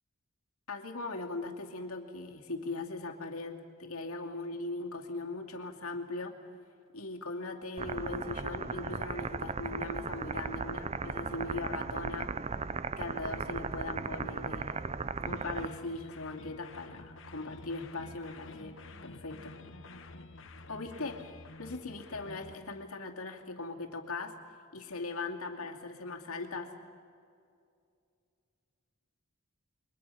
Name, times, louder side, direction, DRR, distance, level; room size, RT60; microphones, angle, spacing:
voice 1, 0.7-6.3 6.9-12.3 13.0-15.0 15.2-19.6 20.7-24.4 24.7-26.7, left 3 dB, 85° left, 2 dB, 2.4 m, -39 dB
sound 1, 7.8-15.7, right 4 dB, 30° right, 0.5 m, -37 dB
sound 2, 15.3-22.6, left 2 dB, 60° left, 1.3 m, -50 dB
29.5 x 24.0 x 5.7 m, 2.4 s
head